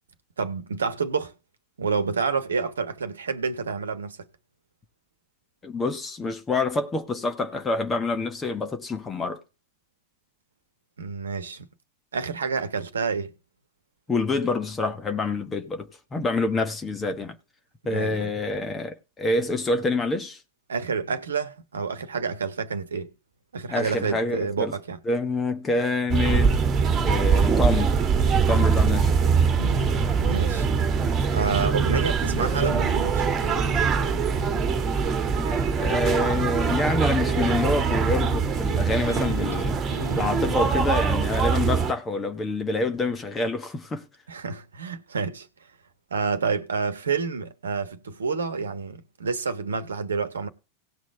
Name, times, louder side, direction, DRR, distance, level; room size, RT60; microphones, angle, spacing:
voice 1, 0.4-1.3 1.8-4.3 11.0-11.7 12.1-13.3 17.9-18.3 20.7-23.1 23.5-25.0 29.6-30.7 31.3-33.4 44.3-45.5 46.1-50.5, right 5 dB, 70° right, 1.2 m, -29 dB
voice 2, 5.6-9.4 14.1-17.3 17.8-20.4 23.7-24.7 25.0-26.6 27.0-28.0 28.5-29.3 35.8-39.8 40.1-44.0, left 3 dB, 20° left, 1.6 m, -27 dB
sound 1, 26.1-41.9, right 5 dB, 25° right, 2.1 m, -23 dB
sound 2, 31.5-40.7, equal, 90° left, 5.2 m, -39 dB
18.0 x 6.2 x 3.4 m
figure-of-eight pair, 85°, 0 cm